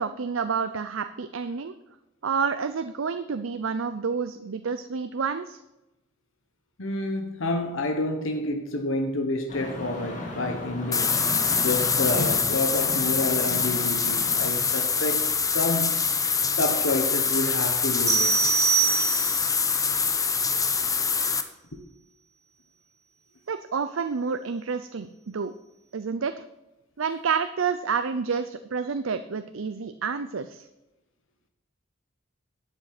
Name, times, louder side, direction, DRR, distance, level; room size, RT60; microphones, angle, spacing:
voice 1, 0.0-1.7 2.2-5.6 23.5-25.5 25.9-26.4 27.0-30.7, right 5 dB, 90° right, 0.6 m, -29 dB
voice 2, 6.8-11.3 11.6-15.3 15.5-16.1 16.6-18.5 21.7-21.8, left 2 dB, 80° left, 1.3 m, -29 dB
sound 1, 9.5-14.5, left 1 dB, 40° left, 2.8 m, -35 dB
sound 2, 10.9-21.4, left 5 dB, 20° left, 0.8 m, -25 dB
sound 3, 18.1-19.6, right 8 dB, 15° right, 1.2 m, -24 dB
11.5 x 8.0 x 6.0 m
head